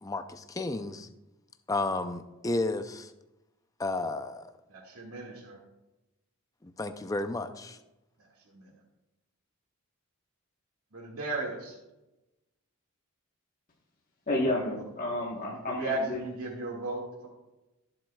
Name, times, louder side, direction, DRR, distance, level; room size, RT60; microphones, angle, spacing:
voice 1, 0.0-1.1 1.7-3.1 3.8-4.5 6.6-7.8, left 2 dB, 15° left, 9 dB, 0.4 m, -32 dB
voice 2, 4.7-5.6 8.5-8.7 10.9-11.8 15.4-17.3, right 2 dB, 85° right, -1 dB, 2.0 m, -36 dB
voice 3, 14.3-16.2, left 1 dB, 40° left, -3 dB, 1.2 m, -31 dB
16.0 x 7.7 x 2.3 m, 0.99 s
head